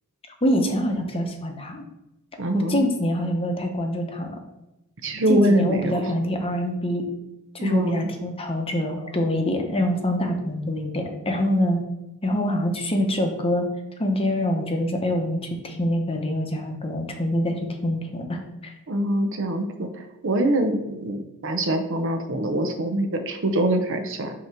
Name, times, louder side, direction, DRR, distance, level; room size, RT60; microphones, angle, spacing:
voice 1, 0.4-1.8 2.5-4.4 5.3-7.1 7.5-11.8 12.2-13.7 14.0-17.6 17.8-18.7, equal, 25° left, 3 dB, 0.8 m, -25 dB
voice 2, 2.4-2.9 5.0-6.1 7.6-8.1 8.9-9.0 18.9-24.3, right 1 dB, 60° right, 6 dB, 0.7 m, -24 dB
6.2 x 2.9 x 5.7 m, 0.92 s
head